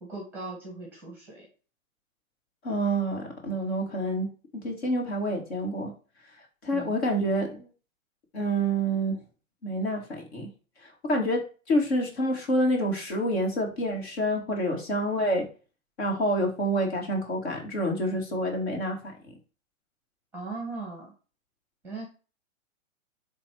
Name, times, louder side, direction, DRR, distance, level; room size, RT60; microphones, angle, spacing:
voice 1, 0.0-1.5 6.7-7.0 20.3-21.1 21.8-22.1, right 3 dB, 5° right, -1 dB, 1.5 m, -38 dB
voice 2, 2.6-4.3 4.6-5.9 6.6-7.7 8.3-9.2 9.6-10.0 10.3-10.5 11.1-11.4 11.7-15.4 16.0-19.0, equal, 50° left, 1 dB, 2.5 m, -27 dB
8.5 x 3.5 x 4.7 m, 0.36 s
hypercardioid pair, 160°, 42 cm